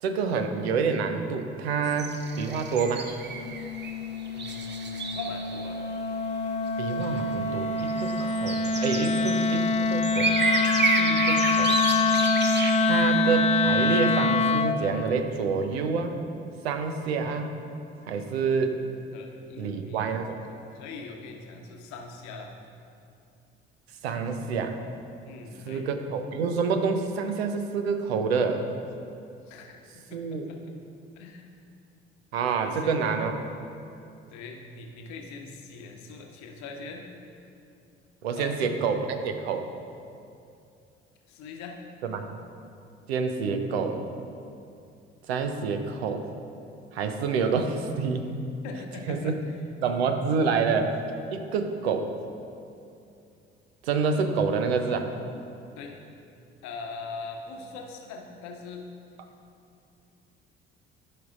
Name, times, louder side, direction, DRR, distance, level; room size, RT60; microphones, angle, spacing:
voice 1, 0.0-3.1 6.8-10.3 11.0-11.7 12.8-16.2 16.6-17.6 18.1-18.8 19.6-20.4 24.0-24.8 25.6-28.7 30.1-30.5 32.3-33.4 38.2-39.7 42.0-42.4 43.1-44.0 45.3-46.3 46.9-48.3 49.1-49.4 49.8-51.0 51.3-52.1 53.8-55.1, right 5 dB, 80° right, 6 dB, 0.6 m, -27 dB
sound 1, 1.8-5.7 6.0-6.1 7.0-7.1 7.6-13.0, right 4 dB, 35° right, 0.8 m, -30 dB
Wind instrument woodwind instrument, 3.3-14.8, left 3 dB, 20° left, 0.4 m, -25 dB
voice 2, 4.3-5.8 18.1-18.8 19.1-20.1 20.5-22.5 25.2-25.9 29.5-30.8 31.1-31.5 32.6-32.9 34.3-37.0 38.3-38.7 41.3-41.8 48.6-49.6 55.8-55.9 56.6-58.9, left 4 dB, 60° left, 2 dB, 1.0 m, -42 dB
13.5 x 5.3 x 2.4 m, 2.5 s
figure-of-eight pair, 50°, 31 cm